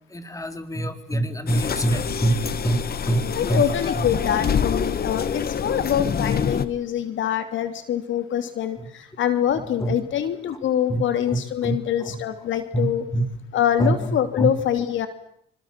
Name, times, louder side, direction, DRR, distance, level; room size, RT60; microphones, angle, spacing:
voice 1, 0.1-4.1 8.8-8.9 9.5-10.0 10.9-11.0 11.3-11.7 12.0-12.2 12.7-13.4 13.8-14.5, right 1 dB, 15° left, 8 dB, 4.0 m, -26 dB
sound 1, 1.5-6.7, left 7 dB, 50° left, 2.0 m, -26 dB
voice 2, 3.4-13.0 13.5-15.1, left 10 dB, 75° left, 10 dB, 2.9 m, -24 dB
27.0 x 26.5 x 7.5 m, 0.69 s
cardioid pair, 90°, 20 cm